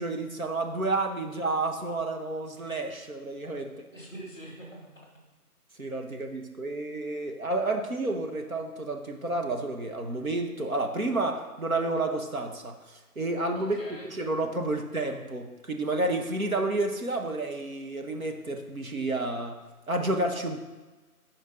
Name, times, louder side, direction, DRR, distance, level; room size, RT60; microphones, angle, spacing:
voice 1, 0.0-3.7 5.8-13.8 14.1-20.6, right 2 dB, 60° right, 3 dB, 1.2 m, -30 dB
voice 2, 3.6-5.1 13.5-14.1, right 1 dB, 15° right, -3 dB, 1.5 m, -45 dB
10.5 x 4.6 x 3.8 m, 1.2 s
figure-of-eight pair, 160°, 46 cm